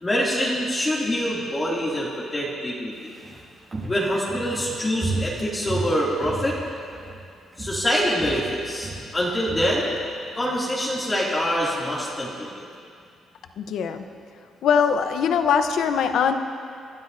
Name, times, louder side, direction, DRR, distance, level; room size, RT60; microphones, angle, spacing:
voice 1, 0.0-3.1 3.9-6.6 7.6-9.9 10.4-12.6, equal, 25° left, -6 dB, 2.6 m, -25 dB
Walk footsteps, 2.9-7.3 7.5-7.9 8.2-10.5 10.8-10.9, right 2 dB, 35° right, 2.8 m, -33 dB
voice 2, 13.6-14.0 14.6-16.3, left 7 dB, 75° left, 8 dB, 0.8 m, -21 dB
25.5 x 12.5 x 2.7 m, 2.4 s
cardioid pair, 90°, 0 cm